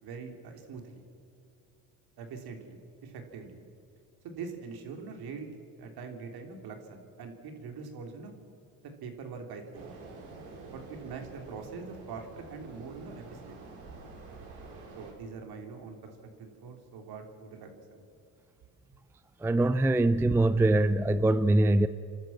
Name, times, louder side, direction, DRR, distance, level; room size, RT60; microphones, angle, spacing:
voice 1, 0.0-1.0 2.2-3.6 4.2-8.3 9.0-9.9 10.7-13.6 15.0-16.1 16.4-18.0, right 5 dB, 60° right, 4 dB, 3.4 m, -43 dB
sound 1, 9.7-15.1, right 3 dB, 80° right, 4.8 m, -48 dB
voice 2, 19.4-21.9, right 2 dB, 5° right, 13 dB, 0.4 m, -23 dB
29.0 x 12.5 x 7.4 m, 2.6 s
supercardioid pair, 95°, 43 cm